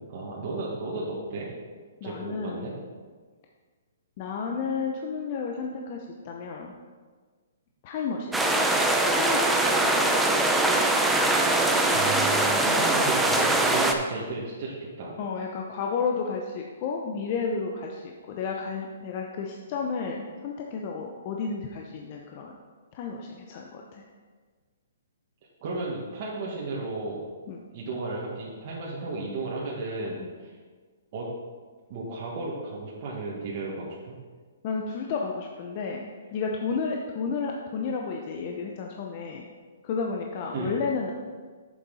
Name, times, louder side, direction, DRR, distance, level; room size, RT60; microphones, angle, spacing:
voice 1, 0.1-1.5 2.0-2.7 11.8-15.2 25.6-27.2 27.7-30.2 30.4-30.5 31.1-31.3 31.9-34.1 40.5-40.7, right 3 dB, 40° right, -5 dB, 1.8 m, -34 dB
voice 2, 2.0-2.7 4.2-6.7 7.8-8.4 9.1-9.8 12.6-12.9 15.2-22.5 22.9-24.0 27.5-27.6 30.2-30.3 34.6-39.4 39.8-41.1, left 5 dB, 40° left, 0 dB, 0.8 m, -32 dB
sound 1, 8.3-13.9, right 2 dB, 5° right, 0.6 m, -22 dB
8.4 x 7.2 x 4.1 m, 1.5 s
hypercardioid pair, 150°, 0 cm